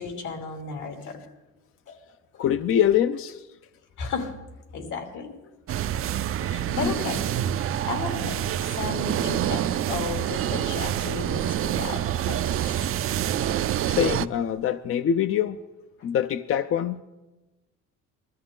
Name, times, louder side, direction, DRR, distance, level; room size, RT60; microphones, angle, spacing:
voice 1, 0.0-1.3 1.9-2.0 2.3-2.4 4.0-4.3 4.7-5.6 6.4-7.2 7.6-12.4, left 5 dB, 80° left, 3 dB, 3.0 m, -34 dB
voice 2, 2.4-3.5 6.7-6.9 13.8-15.6 16.0-17.0, left 9 dB, 45° left, 11 dB, 0.5 m, -24 dB
sound 1, 5.7-14.3, right 11 dB, 45° right, 0.5 m, -27 dB
21.0 x 13.5 x 3.8 m, 1.1 s
cardioid pair, 110°, 31 cm